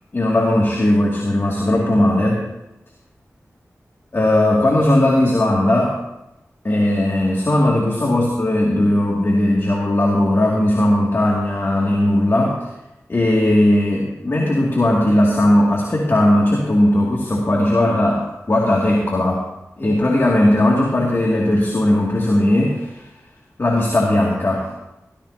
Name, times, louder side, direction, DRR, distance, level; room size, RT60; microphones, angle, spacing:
voice 1, 0.1-2.5 4.1-6.0 6.6-12.6 13.1-19.4 19.8-22.9 23.6-24.7, left 1 dB, 50° left, -3 dB, 2.5 m, -17 dB
16.0 x 15.0 x 2.9 m, 0.92 s
cardioid pair, 45°, 6 cm